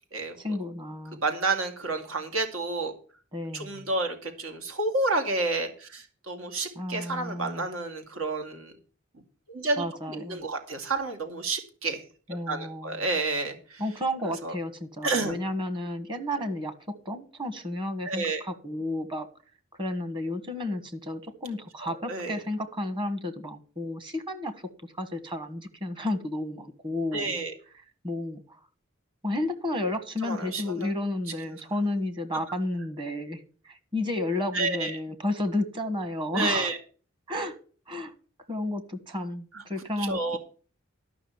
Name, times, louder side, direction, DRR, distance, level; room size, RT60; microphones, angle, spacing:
voice 1, 0.4-1.2 3.3-3.9 6.7-7.7 9.8-10.4 12.3-13.0 13.8-19.3 19.7-24.6 25.0-27.3 28.0-28.4 29.2-36.7 37.3-37.6 37.9-38.1 38.5-40.4, left 1 dB, 25° right, 1.4 m, -32 dB
voice 2, 1.2-2.9 3.5-8.7 9.5-12.0 12.5-13.8 14.4-14.5 15.0-15.4 18.0-18.4 21.8-22.3 27.1-27.5 30.2-30.9 31.5-31.6 34.5-35.0 36.3-36.8 39.5-39.6 40.0-40.4, right 3 dB, 85° right, 2.4 m, -30 dB
12.5 x 6.0 x 7.1 m
head